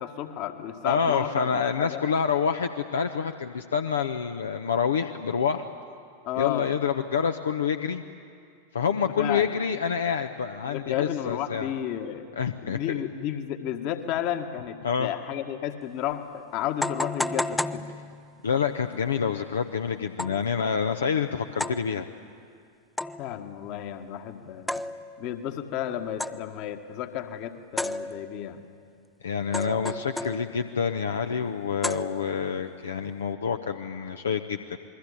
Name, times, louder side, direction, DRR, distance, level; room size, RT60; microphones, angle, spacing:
voice 1, 0.0-2.0 6.2-6.7 9.2-9.5 10.6-12.2 12.6-17.9 23.2-24.8 25.2-28.6, left 10 dB, 40° left, 7 dB, 1.8 m, -32 dB
voice 2, 0.8-5.7 6.4-8.0 8.7-11.7 12.4-12.8 14.8-15.1 18.4-22.1 29.2-34.8, left 6 dB, 70° left, 7 dB, 0.9 m, -27 dB
sound 1, 15.8-15.9 16.8-18.5 20.2-20.5 21.6-21.9 23.0-23.4 24.7-25.3 26.2-26.6 27.8-28.5 29.5-30.7 31.8-32.5, left 1 dB, 5° left, 0.7 m, -33 dB
28.0 x 21.5 x 8.6 m, 2.2 s
figure-of-eight pair, 90°, 0 cm